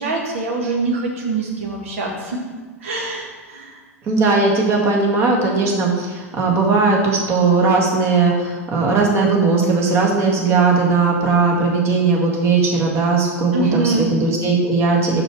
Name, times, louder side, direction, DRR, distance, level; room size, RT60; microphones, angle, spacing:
voice 1, 0.0-2.4 2.8-3.8 13.5-14.1, right 3 dB, 60° right, 0 dB, 1.5 m, -24 dB
voice 2, 4.0-15.2, right 4 dB, 30° right, -1 dB, 1.7 m, -18 dB
6.3 x 6.1 x 4.5 m, 1.3 s
figure-of-eight pair, 85°, 8 cm